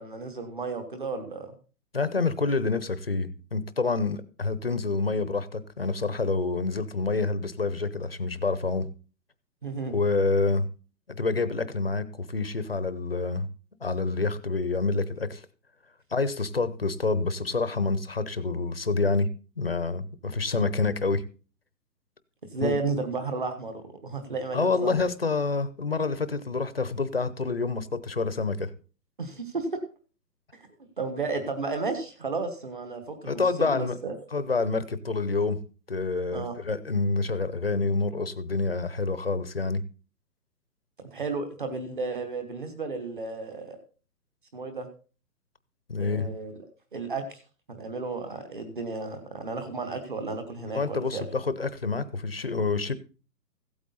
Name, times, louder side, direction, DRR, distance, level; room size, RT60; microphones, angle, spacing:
voice 1, 0.0-1.5 9.6-9.9 22.5-25.0 29.2-29.8 30.5-30.7 31.0-34.2 36.3-36.5 41.1-43.8 44.5-44.9 46.0-46.5 46.9-47.4 47.7-51.2, right 4 dB, 30° right, 7 dB, 1.3 m, -33 dB
voice 2, 1.9-8.9 9.9-10.7 11.1-13.5 13.8-15.4 16.1-19.3 19.6-21.2 22.6-22.8 24.5-28.7 33.2-34.0 34.3-35.6 35.9-39.8 45.9-46.3 50.7-52.9, left 3 dB, 35° left, 14 dB, 0.7 m, -27 dB
15.5 x 8.6 x 4.0 m, 0.37 s
hypercardioid pair, 180°, 50 cm